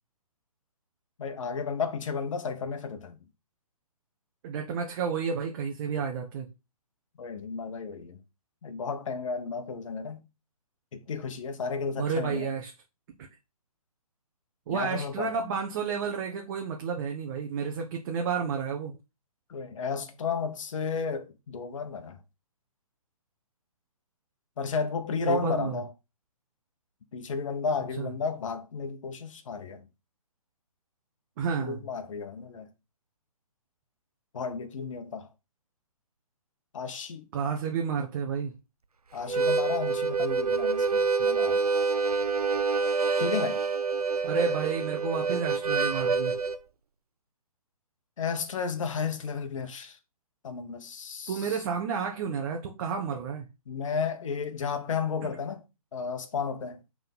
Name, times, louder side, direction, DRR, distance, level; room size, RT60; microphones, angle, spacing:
voice 1, 1.2-3.2 7.2-8.2 8.6-10.2 10.9-12.5 14.7-15.4 19.5-22.2 24.6-25.9 27.1-29.8 31.6-32.7 34.3-35.3 36.7-37.3 39.1-41.6 43.2-43.7 48.2-50.0 50.4-51.3 53.7-55.6 55.9-56.8, left 5 dB, 55° left, 1.2 m, -33 dB
voice 2, 4.4-6.5 12.0-12.7 14.7-18.9 25.2-25.8 28.0-28.1 31.4-31.9 37.3-38.5 44.2-46.4 51.3-53.4, right 6 dB, 35° right, 1.0 m, -31 dB
Harmonica, 39.2-46.6, right 4 dB, 90° right, 0.7 m, -27 dB
5.6 x 3.8 x 5.3 m
hypercardioid pair, 140°, 19 cm